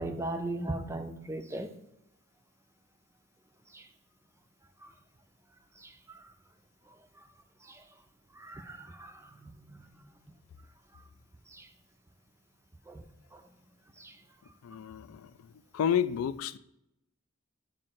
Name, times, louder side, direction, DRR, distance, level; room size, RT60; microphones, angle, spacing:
voice 1, 0.0-1.7 3.7-3.9 4.8-4.9 5.8-6.3 7.6-7.8 8.3-9.9 11.5-11.7 12.9-13.0 13.3-13.4 14.0-14.2, right 2 dB, 10° right, 0.3 m, -39 dB
voice 2, 14.6-16.6, left 8 dB, 80° left, 0.3 m, -31 dB
7.6 x 2.5 x 5.7 m
head